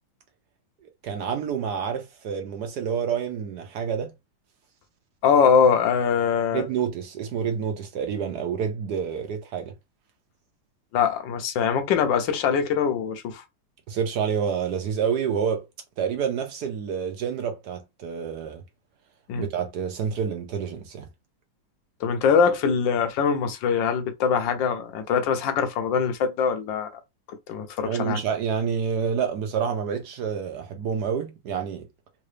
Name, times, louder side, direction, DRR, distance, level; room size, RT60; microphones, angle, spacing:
voice 1, 1.0-4.1 6.5-9.7 13.9-15.6 16.0-18.6 19.4-21.1 27.8-31.8, right 7 dB, 70° right, 1.1 m, -28 dB
voice 2, 5.2-6.6 10.9-13.4 19.3-19.5 22.0-26.9 27.5-28.2, left 6 dB, 75° left, 1.3 m, -22 dB
3.7 x 2.5 x 3.2 m
omnidirectional pair, 2.1 m